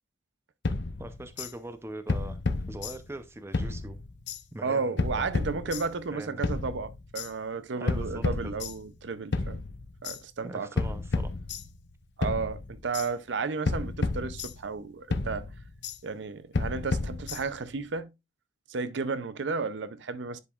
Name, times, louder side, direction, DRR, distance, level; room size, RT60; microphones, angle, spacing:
sound 1, 0.6-1.5 2.1-3.2 3.5-4.4 5.0-6.1 6.4-7.3 7.9-9.0 9.3-10.2 10.8-11.9 12.2-13.1 13.7-14.8 15.1-16.0 16.5-17.7, left 3 dB, 60° left, 0.7 m, -31 dB
voice 1, 1.0-2.4 2.7-4.0 4.5-5.4 6.1-6.4 7.8-8.5 10.4-11.3, right 1 dB, 15° right, 0.6 m, -41 dB
voice 2, 4.6-9.6 10.0-10.7 12.2-15.5 16.0-18.1 18.7-20.4, right 4 dB, 65° right, 0.5 m, -33 dB
10.5 x 4.9 x 2.3 m
head